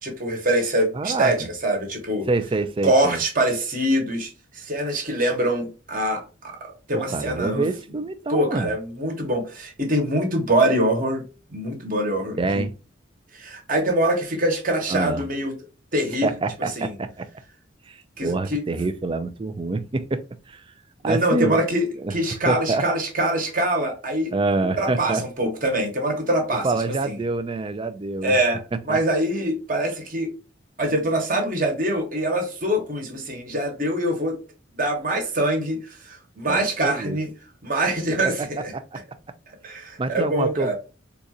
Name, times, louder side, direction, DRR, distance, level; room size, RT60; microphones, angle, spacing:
voice 1, 0.0-2.3 2.8-7.7 8.3-11.2 11.5-12.6 13.3-15.5 15.9-16.3 16.6-16.9 18.2-18.9 21.0-24.3 24.8-27.1 28.2-30.3 30.8-34.4 34.7-35.8 36.0-37.3 37.6-38.7 39.6-40.7, right 1 dB, 45° right, 1.1 m, -24 dB
voice 2, 0.9-1.5 2.3-3.2 6.9-8.7 12.4-12.7 14.9-15.2 16.2-17.3 17.9-20.7 21.0-21.6 22.0-22.1 22.5-22.9 24.3-25.2 26.6-28.4 28.9-29.0 36.5-37.2 38.1-38.5 38.7-39.0 40.0-40.7, right 3 dB, 25° right, 0.4 m, -26 dB
3.9 x 2.4 x 2.8 m
head